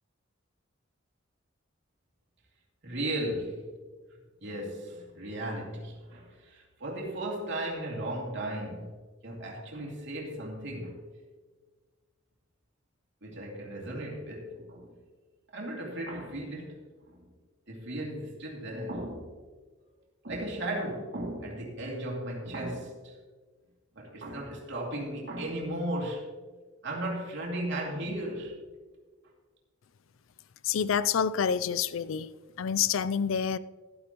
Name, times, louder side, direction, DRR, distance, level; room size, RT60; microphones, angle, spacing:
voice 1, 2.8-3.7 4.4-11.0 13.2-14.9 15.5-17.2 17.7-19.3 20.2-23.2 23.9-26.3 26.8-28.5, right 1 dB, 65° right, 2.7 m, -36 dB
voice 2, 30.6-32.3 32.6-33.6, left 7 dB, 75° left, 0.4 m, -27 dB
13.0 x 11.5 x 3.0 m
head